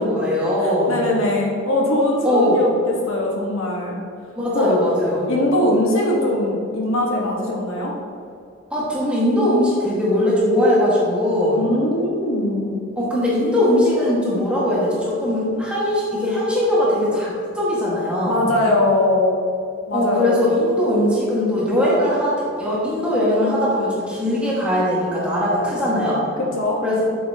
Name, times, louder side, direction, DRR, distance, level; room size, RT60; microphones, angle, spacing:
voice 1, 0.0-1.0 2.2-2.6 4.3-5.3 8.7-11.6 13.0-18.5 19.9-26.2 26.8-27.0, left 1 dB, 5° right, -8 dB, 1.7 m, -20 dB
voice 2, 0.6-4.0 4.5-4.7 5.3-7.9 11.5-12.8 18.3-19.4 19.9-20.4 26.4-26.8, left 1 dB, 75° left, -2 dB, 1.3 m, -21 dB
8.4 x 6.9 x 2.9 m, 2.4 s
head